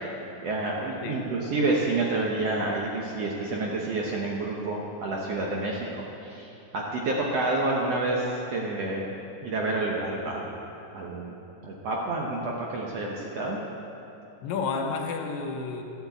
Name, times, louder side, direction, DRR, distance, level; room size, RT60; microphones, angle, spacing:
voice 1, 0.4-9.1 9.4-10.5 10.9-11.3 11.6-13.6, right 2 dB, 65° right, -2 dB, 1.6 m, -29 dB
voice 2, 1.0-1.3 14.4-15.8, left 4 dB, 75° left, 3 dB, 2.5 m, -31 dB
13.0 x 7.2 x 8.0 m, 2.9 s
omnidirectional pair, 4.0 m